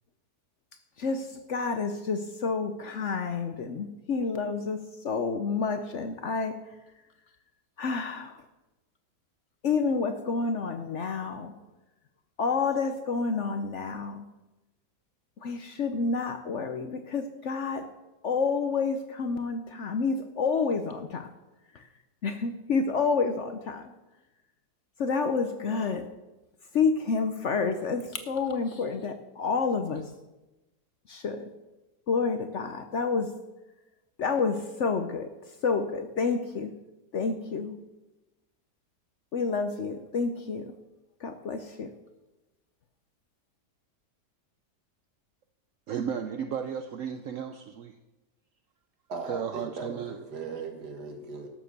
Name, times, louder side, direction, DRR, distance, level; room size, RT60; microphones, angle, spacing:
voice 1, 1.0-6.6 7.8-8.4 9.6-11.5 12.4-14.2 15.4-17.9 18.2-21.3 22.2-23.9 25.0-26.1 26.7-30.0 31.1-31.5 32.1-33.3 34.2-35.3 35.6-36.7 37.1-37.7 39.3-40.7 41.2-41.9, left 4 dB, 55° left, 8 dB, 0.9 m, -29 dB
voice 2, 45.9-48.0 49.2-50.2, right 8 dB, 65° right, 7 dB, 0.9 m, -34 dB
voice 3, 49.1-51.5, right 4 dB, 85° right, 4 dB, 2.2 m, -38 dB
12.0 x 7.1 x 6.6 m, 1.0 s
omnidirectional pair, 1.7 m